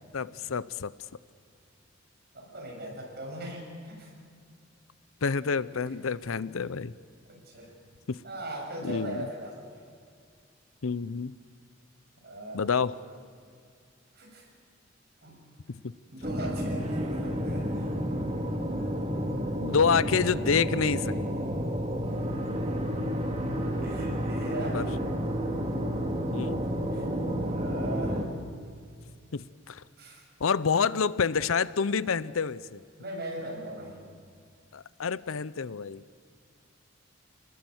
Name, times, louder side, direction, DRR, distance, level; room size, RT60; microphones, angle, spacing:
voice 1, 0.1-0.9 5.2-6.9 8.1-8.2 8.8-9.3 10.8-11.4 12.5-13.0 15.7-15.9 19.6-21.1 24.7-24.9 26.3-26.7 29.3-29.8 30.4-32.8 34.7-36.0, left 5 dB, 85° left, 18 dB, 0.7 m, -28 dB
voice 2, 2.3-4.1 5.9-6.0 7.3-7.7 8.2-9.7 12.2-13.0 14.1-14.5 15.2-15.4 15.7-15.8 16.1-17.9 23.8-24.9 26.9-27.1 27.5-28.3 30.0-30.2 33.0-34.0, right 1 dB, 50° right, 0 dB, 6.6 m, -39 dB
sound 1, 16.2-28.3, equal, 30° right, 2.1 m, -30 dB
27.0 x 19.5 x 8.0 m, 2.2 s
head